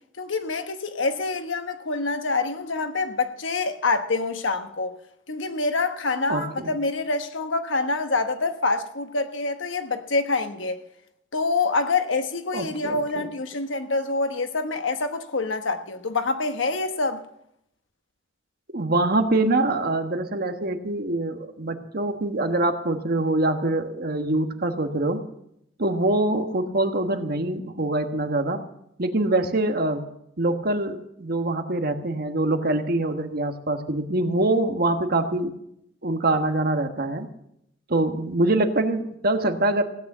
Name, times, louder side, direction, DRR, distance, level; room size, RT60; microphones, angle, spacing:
voice 1, 0.2-4.9 5.3-10.8 11.3-17.2, left 3 dB, 75° left, 1.2 m, -26 dB
voice 2, 6.3-6.7 12.5-13.0 18.7-25.2 25.8-28.6 29.0-30.0 30.4-35.5 36.0-37.3 37.9-39.8, right 2 dB, 50° right, 1.4 m, -24 dB
16.5 x 9.2 x 7.2 m
head